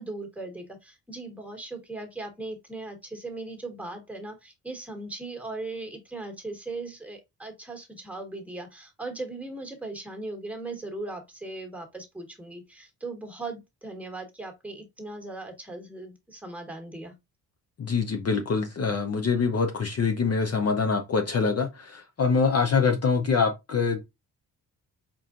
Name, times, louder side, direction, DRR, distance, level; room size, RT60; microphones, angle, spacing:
voice 1, 0.0-17.1, right 2 dB, 5° right, 1.4 m, -38 dB
voice 2, 17.8-24.0, left 5 dB, 40° left, 0.7 m, -25 dB
4.2 x 3.7 x 2.5 m
cardioid pair, 75°, 38 cm